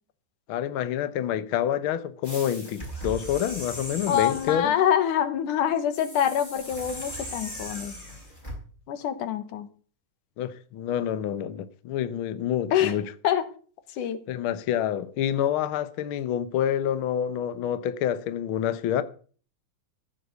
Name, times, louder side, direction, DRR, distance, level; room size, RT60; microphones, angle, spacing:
voice 1, 0.5-4.7 10.4-13.1 14.3-19.0, left 10 dB, 65° left, 1.3 m, -27 dB
sound 1, 2.2-4.7 5.9-8.6, equal, 15° left, 4.3 m, -38 dB
voice 2, 4.1-7.9 8.9-9.7 12.7-12.9 13.2-13.5 13.9-14.2, left 9 dB, 85° left, 2.8 m, -25 dB
15.0 x 6.8 x 8.2 m
omnidirectional pair, 3.5 m